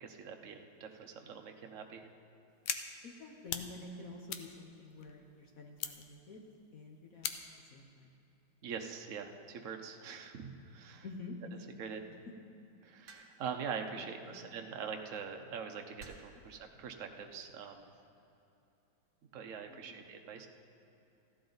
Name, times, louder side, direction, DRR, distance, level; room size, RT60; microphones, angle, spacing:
voice 1, 0.0-2.1 8.6-11.0 11.8-12.0 12.8-17.9 19.3-20.5, right 6 dB, 75° right, 4 dB, 0.7 m, -43 dB
sound 1, 2.7-2.8 3.2-3.7 4.0-5.3 5.8-6.1 6.5-6.6 7.2-7.6, left 9 dB, 85° left, 1.5 m, -38 dB
voice 2, 3.0-6.5 6.7-7.4 7.7-8.1 11.0-11.7 13.9-14.4 19.7-20.1, left 3 dB, 55° left, 1 dB, 1.0 m, -49 dB
sound 2, 13.1-13.6 14.8-15.1 16.0-16.5 17.4-17.8, right 4 dB, 55° right, 1.7 m, -54 dB
14.5 x 11.5 x 3.9 m, 2.9 s
omnidirectional pair, 2.3 m